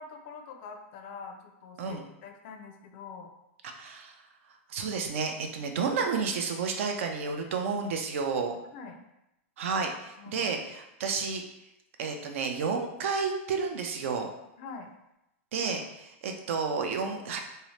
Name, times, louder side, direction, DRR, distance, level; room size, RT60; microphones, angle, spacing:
voice 1, 0.0-3.3 8.7-9.0 10.2-10.5 14.6-14.9, left 5 dB, 50° left, 4 dB, 0.4 m, -45 dB
voice 2, 3.7-4.2 4.7-8.5 9.6-11.4 12.0-14.3 15.5-17.4, right 5 dB, 70° right, 4 dB, 0.5 m, -31 dB
2.7 x 2.0 x 3.1 m, 0.87 s
supercardioid pair, 140°, 7 cm